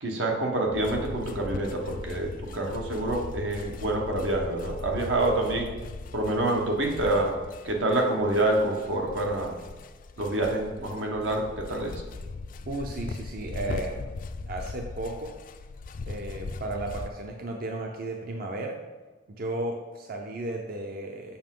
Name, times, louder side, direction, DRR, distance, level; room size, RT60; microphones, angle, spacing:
voice 1, 0.0-5.7 6.1-7.3 7.6-9.5 10.2-11.9, right 2 dB, 85° right, 0 dB, 1.2 m, -27 dB
sound 1, 0.7-17.1, left 3 dB, 45° left, 0.3 m, -39 dB
voice 2, 12.7-14.1 14.5-15.3 16.0-18.8 19.3-21.4, right 2 dB, 55° right, 2 dB, 0.6 m, -34 dB
7.0 x 5.5 x 3.7 m, 1.3 s
head